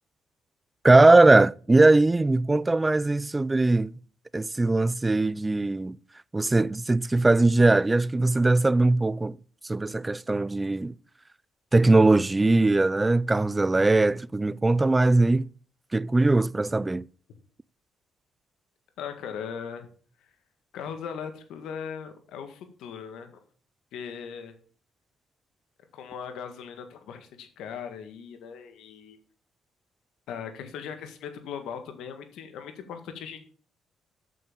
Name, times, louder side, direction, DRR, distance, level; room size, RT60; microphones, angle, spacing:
voice 1, 0.8-3.9 4.3-6.0 6.3-9.4 9.7-10.9 11.7-15.5 15.9-17.1, right 2 dB, 20° right, 0.4 m, -20 dB
voice 2, 19.0-19.9 20.7-23.4 23.9-24.5 25.9-29.2 30.3-33.4, left 7 dB, 85° left, 1.9 m, -39 dB
8.4 x 7.1 x 7.1 m
cardioid pair, 90°, 0 cm